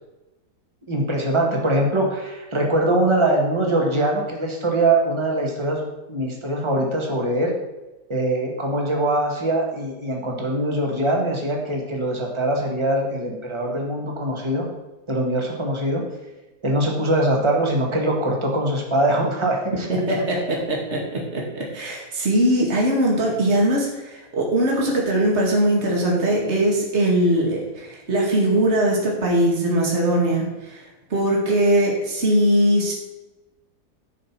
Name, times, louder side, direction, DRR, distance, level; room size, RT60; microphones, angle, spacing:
voice 1, 0.9-7.6 8.1-14.7 15.1-16.1 16.6-20.0, right 1 dB, 15° right, 0 dB, 1.8 m, -22 dB
voice 2, 19.9-32.9, right 1 dB, 40° right, -3 dB, 2.4 m, -21 dB
11.0 x 5.1 x 6.0 m, 1.1 s
omnidirectional pair, 1.8 m